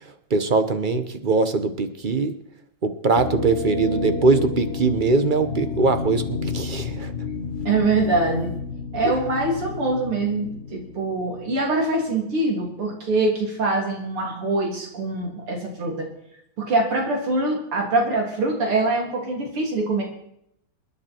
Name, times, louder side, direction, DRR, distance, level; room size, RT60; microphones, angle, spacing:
voice 1, 0.3-2.4 2.8-7.1 9.0-9.1, right 3 dB, 40° right, 9 dB, 0.7 m, -21 dB
sound 1, 3.2-11.8, left 5 dB, 40° left, 1.0 m, -31 dB
voice 2, 7.7-8.5 8.9-16.1 16.6-20.0, right 2 dB, 85° right, 0 dB, 4.2 m, -24 dB
27.5 x 10.0 x 4.5 m, 0.75 s
omnidirectional pair, 2.4 m